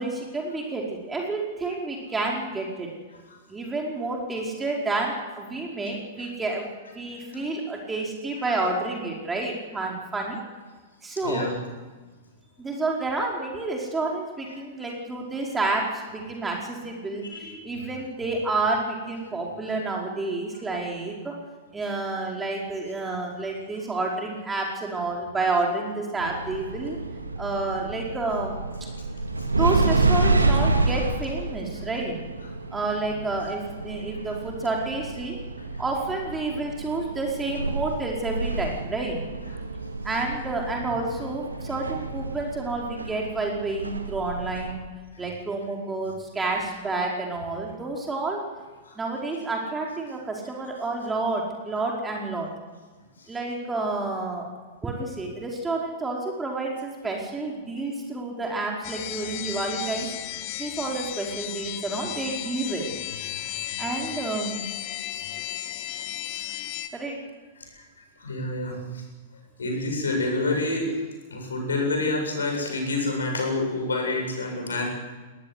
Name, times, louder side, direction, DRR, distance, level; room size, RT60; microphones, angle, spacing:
voice 1, 0.0-2.9 3.5-10.4 11.0-11.5 12.6-21.4 21.7-27.0 27.4-28.5 29.6-32.2 32.7-35.4 35.8-39.2 40.0-44.8 45.2-48.4 49.0-52.5 53.3-54.5 54.8-60.1 60.6-62.8 63.8-64.7 66.9-67.1, right 3 dB, 15° right, -1 dB, 5.0 m, -29 dB
voice 2, 11.2-11.6 17.3-17.9 29.1-29.5 35.7-35.8 39.4-39.5 45.1-45.2 48.8-49.0 53.2-53.3 60.7-60.8 63.3-63.7 66.0-66.5 67.6-67.8 68.2-69.0 69.6-70.9 71.3-74.8, left 2 dB, 75° left, 3 dB, 7.9 m, -29 dB
sound 1, 26.2-44.7, right 3 dB, 85° right, 2.2 m, -29 dB
sound 2, 58.8-66.9, left 14 dB, 45° left, 1.6 m, -34 dB
20.5 x 19.5 x 8.4 m, 1.3 s
figure-of-eight pair, 100°, 0 cm